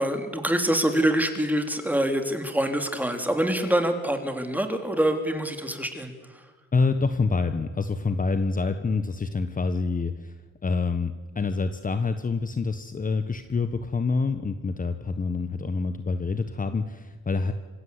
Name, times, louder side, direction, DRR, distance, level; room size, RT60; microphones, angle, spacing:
voice 1, 0.0-6.1, right 1 dB, 5° right, 6 dB, 3.3 m, -25 dB
voice 2, 6.7-10.4 10.6-17.5, left 4 dB, 25° left, 9 dB, 1.3 m, -27 dB
26.0 x 16.0 x 8.3 m, 1.4 s
cardioid pair, 90°, 30 cm